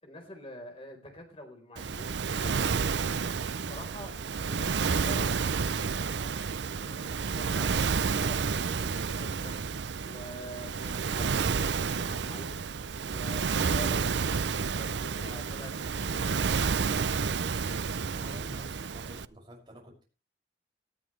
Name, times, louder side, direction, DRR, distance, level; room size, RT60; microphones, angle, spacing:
voice 1, 0.0-2.8 3.5-6.4 6.8-12.7 13.1-16.7, left 1 dB, 30° left, 4 dB, 4.1 m, -47 dB
Waves surf, 1.8-19.3, right 5 dB, 85° right, 0.6 m, -30 dB
voice 2, 18.1-20.0, equal, 25° right, -2 dB, 6.4 m, -49 dB
18.5 x 13.0 x 3.3 m, 0.32 s
head